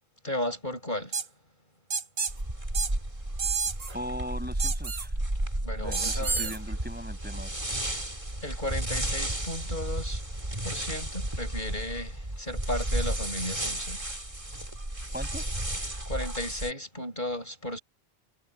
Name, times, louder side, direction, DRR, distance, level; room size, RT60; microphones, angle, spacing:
voice 1, 0.2-1.2 5.6-6.5 8.4-10.2 10.6-14.1 16.1-17.8, left 1 dB, 50° left, 7.8 m, -34 dB
sound 1, 1.1-1.3 1.9-2.3 2.7-2.9 3.4-3.9 4.6-5.1 5.9-6.6, right 5 dB, 65° right, 1.5 m, -30 dB
sound 2, 2.3-16.7, right 1 dB, 30° right, 3.7 m, -33 dB
voice 2, 3.9-5.1 5.8-7.6 15.1-15.4, equal, 10° right, 6.6 m, -39 dB
omnidirectional pair, 1.1 m